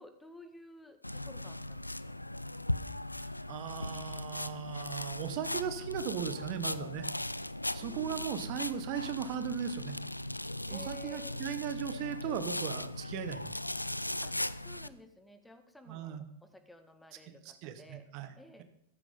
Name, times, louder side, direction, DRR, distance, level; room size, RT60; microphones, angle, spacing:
voice 1, 0.0-2.2 7.8-8.5 10.7-11.3 14.2-18.0 18.4-18.6, left 1 dB, 5° left, 8 dB, 1.8 m, -54 dB
sound 1, 1.0-14.9, left 1 dB, 85° left, 0.5 m, -38 dB
voice 2, 3.2-7.1 7.7-10.0 10.7-13.6 15.9-16.2 17.3-18.3, right 9 dB, 45° right, 10 dB, 1.3 m, -38 dB
15.0 x 14.5 x 3.9 m, 0.78 s
figure-of-eight pair, 90°, 0 cm